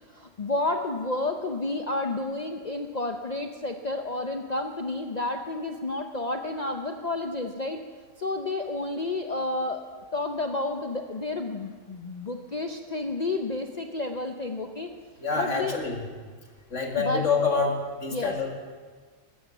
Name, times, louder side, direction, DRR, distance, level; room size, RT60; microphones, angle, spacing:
voice 1, 0.1-7.8 8.2-9.8 10.1-14.9 15.3-15.8 17.0-17.2 18.1-18.3, left 2 dB, 40° left, 5 dB, 0.7 m, -30 dB
voice 2, 15.2-16.0 16.7-18.5, left 4 dB, 65° left, 1 dB, 2.4 m, -27 dB
13.5 x 13.0 x 7.1 m, 1.5 s
omnidirectional pair, 1.4 m